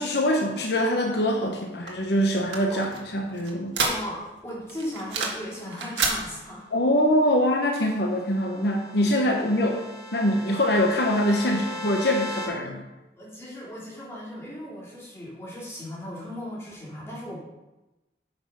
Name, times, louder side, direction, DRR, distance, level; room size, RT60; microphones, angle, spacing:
voice 1, 0.0-3.7 6.7-9.8 10.1-12.8, left 1 dB, 65° left, 2 dB, 0.9 m, -24 dB
sound 1, 1.9-4.4 4.7-5.5 5.7-6.2, right 4 dB, 85° right, 1.7 m, -29 dB
voice 2, 3.8-6.7 13.2-17.4, equal, 15° left, -7 dB, 3.1 m, -37 dB
sound 2, 7.5-12.5, left 1 dB, 5° right, 3.7 m, -38 dB
8.8 x 5.4 x 5.6 m, 1.0 s
head